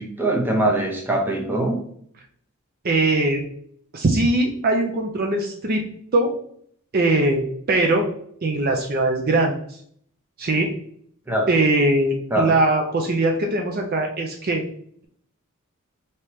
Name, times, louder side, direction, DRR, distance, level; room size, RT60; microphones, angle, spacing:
voice 1, 0.0-1.8 11.3-11.5 12.3-12.5, right 1 dB, 10° right, 0 dB, 0.8 m, -22 dB
voice 2, 2.8-3.4 3.9-5.9 6.1-6.3 6.9-8.0 8.4-9.5 10.4-10.7 11.5-14.6, right 2 dB, 45° right, 2 dB, 0.5 m, -21 dB
5.0 x 2.9 x 3.1 m, 0.63 s
head